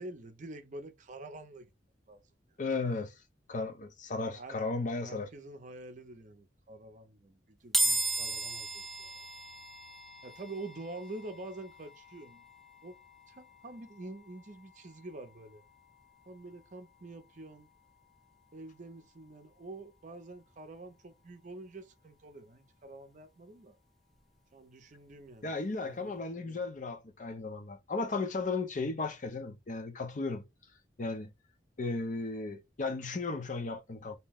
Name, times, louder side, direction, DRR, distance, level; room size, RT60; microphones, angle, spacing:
voice 1, 0.0-1.7 2.1-2.2 4.3-9.2 10.2-12.4 12.8-13.0 13.3-15.6 16.3-17.7 18.5-23.8 24.5-25.5 25.8-26.7, right 2 dB, 45° right, 0.6 m, -47 dB
voice 2, 2.6-3.1 3.5-5.3 25.4-30.4 31.0-31.3 31.8-34.2, left 3 dB, 45° left, 0.6 m, -35 dB
sound 1, 7.7-21.1, right 2 dB, ahead, 0.5 m, -39 dB
2.7 x 2.1 x 3.4 m
head